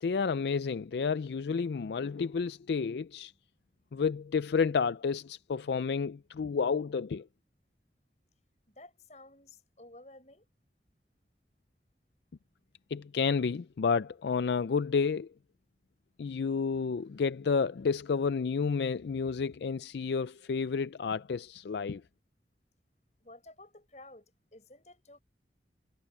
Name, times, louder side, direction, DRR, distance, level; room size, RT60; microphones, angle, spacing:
voice 1, 0.0-3.3 3.9-7.3 12.9-15.3 16.2-22.0, left 5 dB, 75° left, 0.4 m, -30 dB
voice 2, 8.7-10.5 23.2-25.2, left 2 dB, 40° left, 7.0 m, -53 dB
head